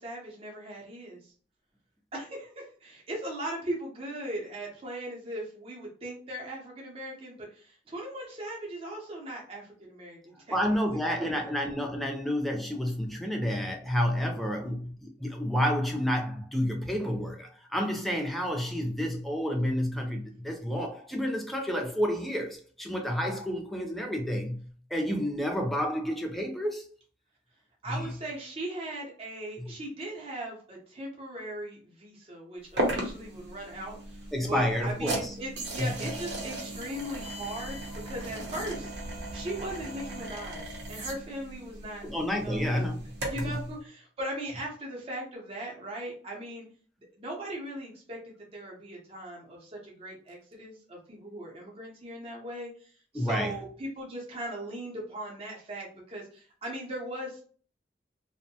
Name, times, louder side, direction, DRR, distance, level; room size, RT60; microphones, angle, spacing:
voice 1, 0.0-1.3 2.1-11.0 14.3-14.7 27.8-37.8 38.0-42.9 43.3-46.6 47.2-57.4, right 1 dB, 30° right, 0.7 m, -39 dB
voice 2, 10.5-26.8 27.9-28.1 29.6-29.7 34.3-35.3 35.8-35.9 42.0-43.0 43.3-43.6 53.1-53.5, equal, ahead, 0.4 m, -30 dB
sound 1, 32.8-43.6, right 1 dB, 70° right, 0.7 m, -37 dB
2.6 x 2.1 x 2.7 m
head